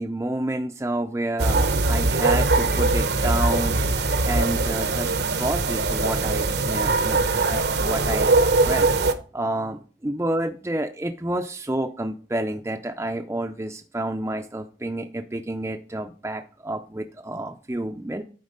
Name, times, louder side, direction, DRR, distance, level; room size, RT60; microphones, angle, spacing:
voice 1, 0.0-3.8 4.2-5.1 5.4-7.2 7.5-8.9 9.3-18.2, right 1 dB, 15° right, 3 dB, 0.5 m, -29 dB
sound 1, 1.4-9.1, right 3 dB, 65° right, 0.8 m, -21 dB
10.5 x 4.3 x 5.1 m, 0.38 s
head